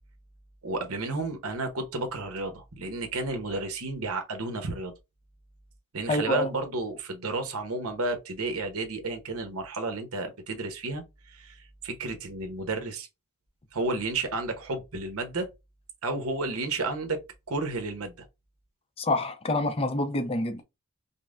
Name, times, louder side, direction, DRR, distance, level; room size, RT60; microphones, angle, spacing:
voice 1, 0.6-4.9 5.9-13.1 13.7-15.5 16.0-17.2 17.5-18.1, right 2 dB, 75° right, 1.0 m, -32 dB
voice 2, 6.1-6.5 19.0-20.6, left 2 dB, 25° left, 0.5 m, -27 dB
5.4 x 2.1 x 2.5 m
head